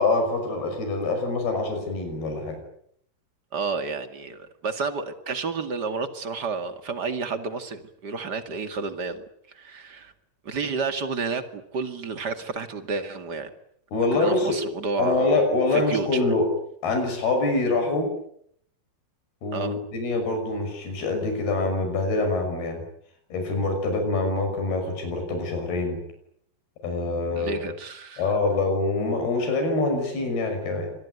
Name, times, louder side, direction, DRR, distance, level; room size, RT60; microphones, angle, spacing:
voice 1, 0.0-2.6 13.9-14.6 15.0-16.5 16.8-18.1 19.4-22.8 23.3-26.0 26.8-27.6 28.2-30.9, left 3 dB, 85° left, 5 dB, 7.9 m, -25 dB
voice 2, 3.5-9.3 9.5-10.1 10.4-13.5 14.1-15.4 15.7-16.3 19.5-19.7 27.4-28.2, right 4 dB, 35° right, 8 dB, 2.1 m, -30 dB
26.5 x 21.5 x 9.4 m, 0.69 s
omnidirectional pair, 4.4 m